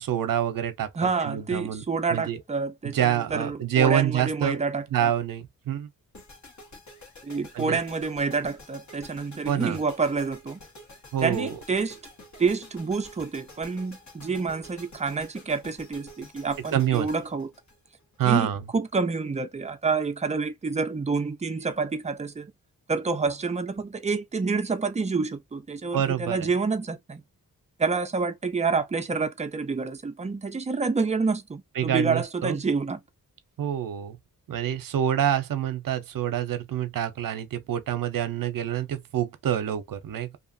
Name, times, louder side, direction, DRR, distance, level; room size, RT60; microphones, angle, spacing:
voice 1, 0.0-0.9 1.2-1.8 2.1-2.4 2.8-4.6 4.9-5.9 7.5-7.8 9.5-9.8 11.1-11.6 16.7-17.1 18.2-18.6 25.9-26.5 31.7-32.6 33.6-34.2 34.5-40.4, right 10 dB, 70° right, 0.7 m, -26 dB
voice 2, 1.0-5.1 7.2-10.6 11.2-12.0 12.4-17.5 18.2-22.5 22.9-27.2 27.8-33.0, right 4 dB, 20° right, 0.4 m, -28 dB
sound 1, 6.1-18.3, left 1 dB, 55° left, 1.3 m, -49 dB
2.7 x 2.4 x 2.5 m
wide cardioid pair, 105°, 35 cm